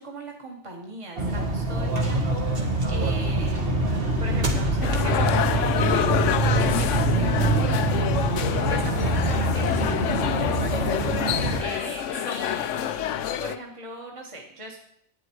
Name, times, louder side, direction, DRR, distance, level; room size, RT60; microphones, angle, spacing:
voice 1, 0.0-6.1 6.5-7.9 8.6-10.8 11.2-14.8, right 1 dB, 25° right, 0 dB, 1.7 m, -40 dB
sound 1, 1.2-11.6, right 2 dB, 50° right, 1.9 m, -24 dB
sound 2, 4.8-13.6, left 10 dB, 85° left, 1.0 m, -27 dB
11.0 x 9.8 x 4.6 m, 0.71 s
omnidirectional pair, 1.2 m